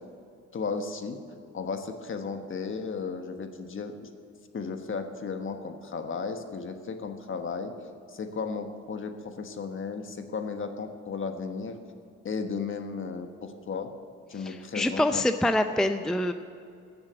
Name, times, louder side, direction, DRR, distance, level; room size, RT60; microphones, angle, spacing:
voice 1, 0.5-1.2 1.5-4.1 4.5-7.7 8.1-11.8 12.2-13.9 14.3-15.2, left 5 dB, 40° left, 6 dB, 1.4 m, -34 dB
voice 2, 14.4-16.3, left 1 dB, ahead, 8 dB, 0.5 m, -26 dB
14.5 x 7.0 x 8.2 m, 2.5 s
cardioid pair, 90°, 30 cm